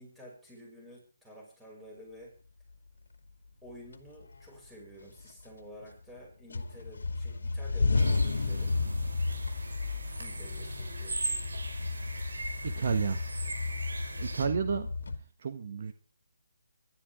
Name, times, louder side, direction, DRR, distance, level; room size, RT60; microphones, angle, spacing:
voice 1, 0.0-2.4 3.6-8.8 10.2-11.2, equal, 5° right, -3 dB, 6.9 m, -51 dB
sound 1, 3.3-3.4 3.9-4.7 5.0-6.2 6.5-15.2, left 3 dB, 75° left, 2.2 m, -32 dB
sound 2, 8.0-14.5, right 2 dB, 80° right, 5.7 m, -40 dB
voice 2, 12.6-13.2 14.2-14.9 15.4-15.9, right 6 dB, 50° right, 8 dB, 1.4 m, -31 dB
23.5 x 12.5 x 3.8 m, 0.35 s
hypercardioid pair, 160°, 0 cm